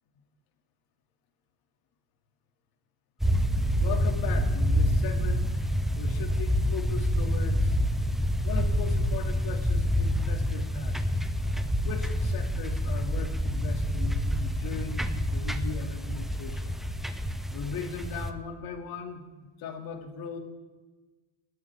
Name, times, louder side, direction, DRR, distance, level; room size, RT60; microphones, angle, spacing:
sound 1, 3.2-18.3, equal, ahead, 0.4 m, -27 dB
voice 1, 3.8-7.7 8.4-11.0 11.8-16.8 17.5-19.2 19.6-20.4, left 6 dB, 50° left, 5 dB, 2.6 m, -38 dB
30.0 x 13.0 x 3.6 m, 1.3 s
cardioid pair, 175°, 45 cm